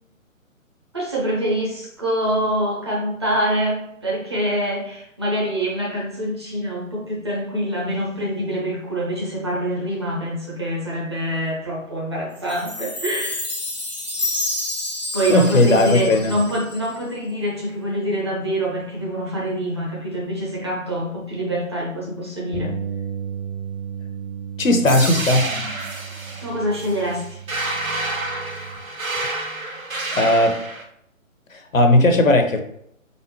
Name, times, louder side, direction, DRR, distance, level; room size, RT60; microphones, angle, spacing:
voice 1, 0.9-13.5 15.1-22.7 26.4-27.4, equal, 20° right, -4 dB, 0.6 m, -25 dB
Chime, 12.5-17.0, left 2 dB, 35° left, 0.4 m, -29 dB
voice 2, 15.3-16.3 24.6-25.5 30.1-30.6 31.5-32.6, left 1 dB, 70° left, 6 dB, 0.8 m, -16 dB
Bass guitar, 22.5-28.8, right 7 dB, 55° right, 1.1 m, -34 dB
sound 1, 24.8-30.8, right 2 dB, 80° right, 0.9 m, -29 dB
4.1 x 3.5 x 2.8 m, 0.73 s
figure-of-eight pair, 140°, 41 cm